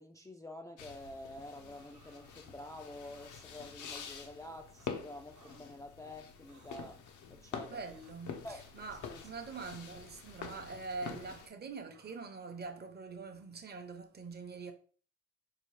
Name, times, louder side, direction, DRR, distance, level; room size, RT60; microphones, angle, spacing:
voice 1, 0.0-7.0 7.3-7.8 8.4-8.6 9.0-9.2, left 1 dB, 10° left, 0.3 m, -48 dB
sound 1, 0.8-11.5, left 6 dB, 75° left, 0.7 m, -47 dB
sound 2, 1.7-2.8 3.1-3.4 3.8-4.2 4.7-4.9 5.3-5.7 6.4-7.1 7.9-8.2 9.1-9.7 10.4-11.2 11.9-12.2, right 4 dB, 65° right, 1.0 m, -64 dB
voice 2, 7.7-14.7, right 4 dB, 35° right, 0.7 m, -44 dB
4.9 x 2.3 x 3.2 m
cardioid pair, 90°, 30 cm